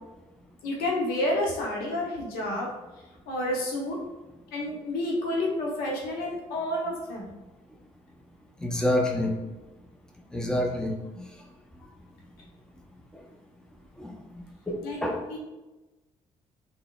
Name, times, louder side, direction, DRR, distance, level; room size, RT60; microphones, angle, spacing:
voice 1, 0.6-2.7 3.3-4.0 4.5-7.3 14.8-15.0 15.3-15.4, left 1 dB, 75° left, -2 dB, 0.7 m, -29 dB
voice 2, 8.6-9.3 10.3-11.2 14.0-14.1 14.7-15.2, left 1 dB, 5° left, 1 dB, 0.6 m, -27 dB
3.6 x 2.0 x 2.3 m, 1.1 s
hypercardioid pair, 45°, 16 cm